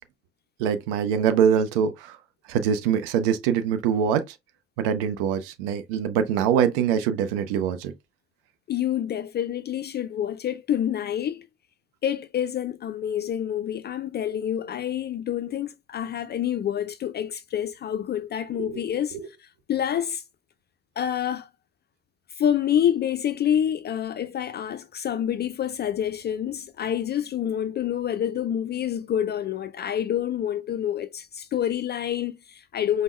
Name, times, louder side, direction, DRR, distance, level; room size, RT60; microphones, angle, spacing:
voice 1, 0.6-2.2 2.5-4.3 4.8-7.9 18.6-18.8, right 8 dB, 70° right, 0.6 m, -23 dB
voice 2, 8.7-11.5 12.0-20.2 21.0-21.5 22.4-33.0, left 10 dB, 35° left, 0.4 m, -27 dB
5.1 x 2.1 x 3.1 m
figure-of-eight pair, 45°, 29 cm